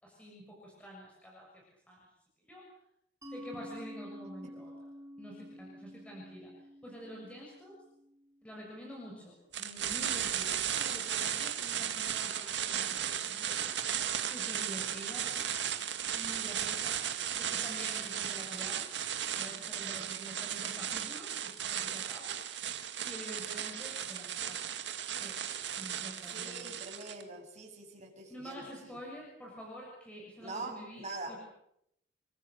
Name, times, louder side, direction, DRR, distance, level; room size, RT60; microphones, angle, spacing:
voice 1, 0.0-2.0 2.5-2.6 3.3-4.7 5.2-6.5 6.8-7.8 8.4-13.6 14.2-15.3 16.1-17.0 17.4-18.9 19.3-22.4 23.0-24.6 25.2-25.4 25.8-26.7 28.3-31.4, equal, 5° left, -3 dB, 6.8 m, -48 dB
Mallet percussion, 3.2-8.6, equal, 15° right, 5.0 m, -49 dB
sound 1, 9.5-27.2, right 9 dB, 65° right, 2.3 m, -35 dB
voice 2, 26.3-29.0 30.4-31.4, right 3 dB, 40° right, 1 dB, 7.9 m, -44 dB
29.5 x 23.0 x 6.8 m, 0.77 s
head